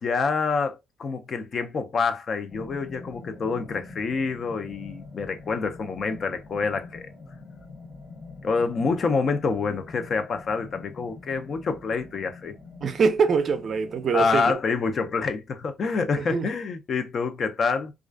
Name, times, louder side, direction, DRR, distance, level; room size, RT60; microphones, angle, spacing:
voice 1, 0.0-7.1 8.4-12.5 14.1-17.9, left 4 dB, 55° left, 0.4 m, -27 dB
sound 1, 2.5-14.6, left 3 dB, 70° left, 0.9 m, -44 dB
voice 2, 12.8-14.6 16.2-16.5, right 5 dB, 55° right, 0.4 m, -24 dB
2.4 x 2.3 x 2.2 m
supercardioid pair, 75°, 0 cm